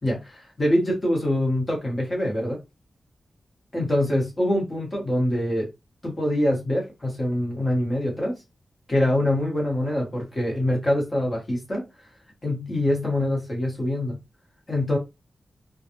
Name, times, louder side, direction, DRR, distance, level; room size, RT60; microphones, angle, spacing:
voice 1, 0.0-2.6 3.7-5.7 6.0-8.4 8.9-11.8 12.4-14.2 14.7-15.0, left 1 dB, 25° left, -1 dB, 1.5 m, -24 dB
3.8 x 2.5 x 2.9 m, 0.24 s
wide cardioid pair, 170°, 0 cm